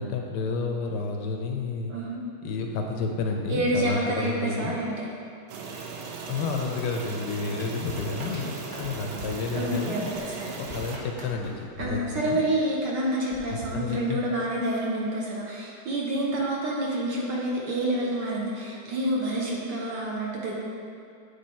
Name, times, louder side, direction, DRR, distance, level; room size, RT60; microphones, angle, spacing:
voice 1, 0.0-1.9 2.4-4.8 6.3-10.1 10.6-12.4 13.5-14.2, left 4 dB, 75° left, 2 dB, 1.0 m, -31 dB
voice 2, 3.5-5.1 9.5-10.5 11.8-20.6, right 1 dB, 65° right, -3 dB, 1.2 m, -28 dB
sound 1, 5.5-11.0, right 4 dB, 80° right, 1.5 m, -38 dB
sound 2, 7.8-12.7 13.3-14.5, left 1 dB, 35° right, 0.8 m, -43 dB
8.3 x 3.3 x 4.2 m, 2.5 s
omnidirectional pair, 2.4 m